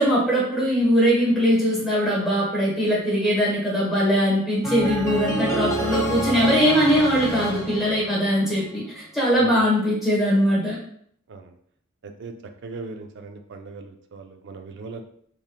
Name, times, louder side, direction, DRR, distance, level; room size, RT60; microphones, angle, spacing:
voice 1, 0.0-10.8, equal, ahead, -7 dB, 1.2 m, -21 dB
sound 1, 4.6-8.7, right 1 dB, 15° left, 0.8 m, -28 dB
voice 2, 12.0-12.3 12.6-15.0, right 3 dB, 55° right, 6 dB, 0.4 m, -38 dB
3.1 x 2.7 x 2.2 m, 0.63 s
head